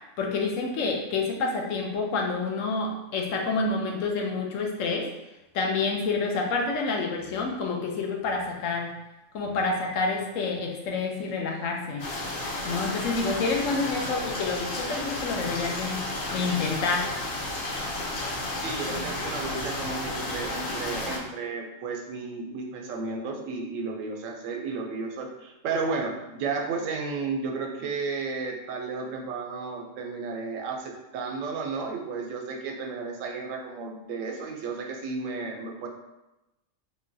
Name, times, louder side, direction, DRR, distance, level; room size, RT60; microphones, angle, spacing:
voice 1, 0.2-5.1 5.5-8.9 9.3-12.1 12.6-17.1, left 4 dB, 85° left, 1 dB, 1.0 m, -28 dB
sound 1, 12.0-21.2, left 2 dB, 55° left, 0.7 m, -32 dB
voice 2, 18.6-35.9, right 4 dB, 85° right, 2 dB, 0.9 m, -33 dB
3.7 x 2.2 x 2.6 m, 0.96 s
omnidirectional pair, 1.3 m